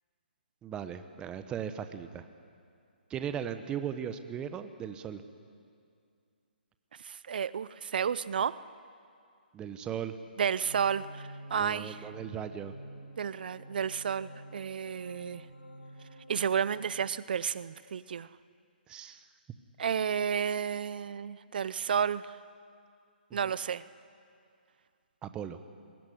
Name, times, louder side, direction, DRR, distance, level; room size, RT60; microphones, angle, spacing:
voice 1, 0.6-2.3 3.1-5.2 9.5-10.2 11.5-12.7 18.9-19.3 23.3-23.5 25.2-25.6, right 8 dB, 15° right, 10 dB, 0.9 m, -38 dB
voice 2, 7.0-8.6 10.4-12.0 13.2-15.4 16.3-18.3 19.8-22.3 23.3-23.8, right 7 dB, 60° right, 18 dB, 0.6 m, -31 dB
sound 1, 10.6-17.0, equal, 85° left, 2.8 m, -49 dB
21.5 x 16.0 x 10.0 m, 2.3 s
hypercardioid pair, 140°, 6 cm